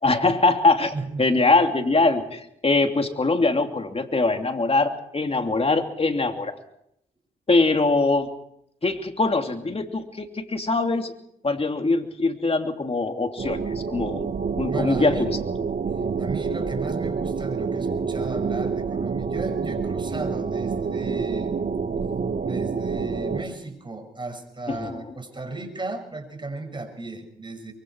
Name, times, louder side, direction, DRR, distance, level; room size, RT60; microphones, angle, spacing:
voice 1, 0.0-6.5 7.5-8.3 8.8-11.1 11.4-14.3 14.6-15.4 24.7-25.0, left 3 dB, 35° left, 5 dB, 3.0 m, -22 dB
voice 2, 0.9-1.4 14.6-15.3 16.2-21.6 22.4-27.7, right 2 dB, 30° right, 6 dB, 6.4 m, -35 dB
sound 1, 13.4-23.4, right 5 dB, 55° right, 1.9 m, -27 dB
23.5 x 23.5 x 4.8 m, 0.74 s
supercardioid pair, 50°, 17 cm